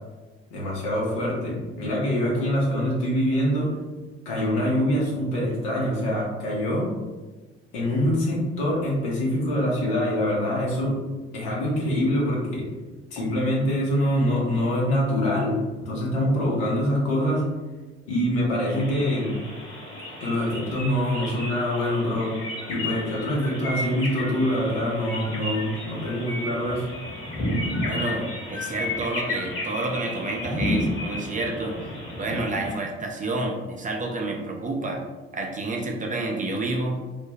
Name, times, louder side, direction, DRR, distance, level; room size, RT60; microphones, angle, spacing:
voice 1, 0.5-3.7 4.2-6.9 7.7-11.0 11.3-12.7 13.1-15.6 15.9-17.4 18.1-19.4 20.2-22.3 22.7-26.8, equal, 70° left, -4 dB, 0.9 m, -24 dB
sound 1, 18.6-32.7, left 1 dB, 40° left, 1.1 m, -32 dB
voice 2, 27.8-31.8 32.2-35.0 35.3-37.0, right 2 dB, 25° right, 1 dB, 0.5 m, -29 dB
2.4 x 2.1 x 3.2 m, 1.2 s
figure-of-eight pair, 50°, 32 cm